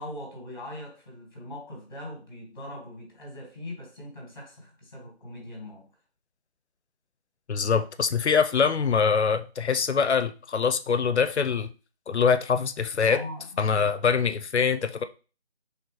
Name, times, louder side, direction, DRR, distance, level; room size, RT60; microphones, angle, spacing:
voice 1, 0.0-5.9 13.1-13.9, left 1 dB, 20° left, 1.3 m, -41 dB
voice 2, 7.5-11.7 12.1-13.2 13.6-15.0, left 6 dB, 85° left, 0.6 m, -24 dB
3.9 x 3.3 x 3.0 m
figure-of-eight pair, 170°, 33 cm